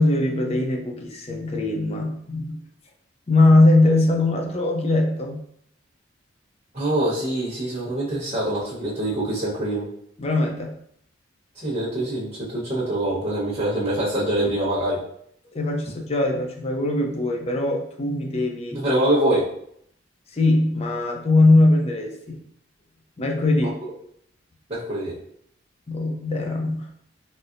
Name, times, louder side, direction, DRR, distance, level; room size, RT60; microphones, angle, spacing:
voice 1, 0.0-2.6 3.3-5.4 10.2-10.7 15.5-18.8 20.3-22.4 23.2-23.8 25.9-26.9, left 2 dB, 30° left, 1 dB, 0.5 m, -21 dB
voice 2, 6.7-9.9 11.5-15.0 18.7-19.5 24.7-25.1, right 1 dB, 30° right, -13 dB, 1.1 m, -24 dB
4.1 x 2.0 x 2.5 m, 0.69 s
head